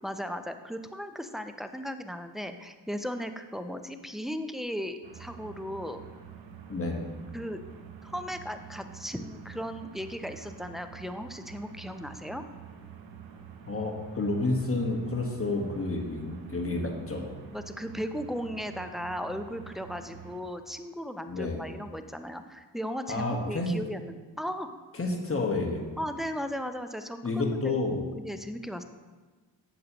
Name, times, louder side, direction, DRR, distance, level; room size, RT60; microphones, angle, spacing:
voice 1, 0.0-6.0 7.3-7.6 8.0-12.4 17.5-24.7 26.0-27.8 28.1-28.8, equal, ahead, 8 dB, 0.4 m, -36 dB
sound 1, 5.0-20.4, right 7 dB, 85° right, 0.8 m, -47 dB
voice 2, 6.7-7.0 13.7-17.3 21.3-21.6 23.1-23.8 25.0-25.9 27.2-28.0, left 2 dB, 30° left, 1 dB, 1.4 m, -30 dB
8.0 x 6.5 x 2.9 m, 1.3 s
cardioid pair, 55°, 44 cm